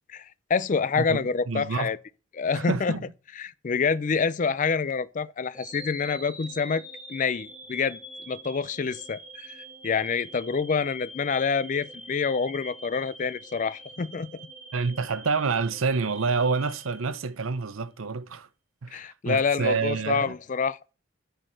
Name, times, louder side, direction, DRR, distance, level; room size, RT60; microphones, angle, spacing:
voice 1, 0.1-2.0 2.3-2.9 3.4-6.8 7.1-8.0 8.3-14.4 18.9-20.9, left 5 dB, 40° left, 0.4 m, -27 dB
voice 2, 1.0-1.9 2.5-3.0 14.7-18.5 18.8-20.4, right 4 dB, 85° right, 0.7 m, -28 dB
sound 1, 5.5-17.7, right 1 dB, 5° right, 1.3 m, -45 dB
9.0 x 4.5 x 6.4 m
head